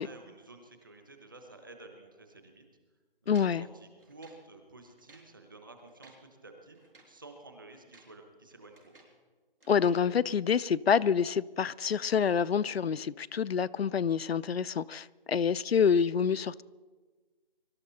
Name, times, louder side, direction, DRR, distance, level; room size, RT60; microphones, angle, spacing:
voice 1, 0.0-2.6 3.2-6.2 6.4-6.8 7.1-8.8, right 2 dB, 20° right, 1.2 m, -52 dB
voice 2, 3.3-3.6 9.7-16.6, left 7 dB, 90° left, 0.5 m, -27 dB
sound 1, 3.3-4.5 4.9-5.3 5.8-6.3 6.7-7.2 7.7-8.2 8.5-9.2 9.6-10.0, right 3 dB, 70° right, 6.1 m, -59 dB
23.5 x 12.5 x 4.1 m
figure-of-eight pair, 175°, 30 cm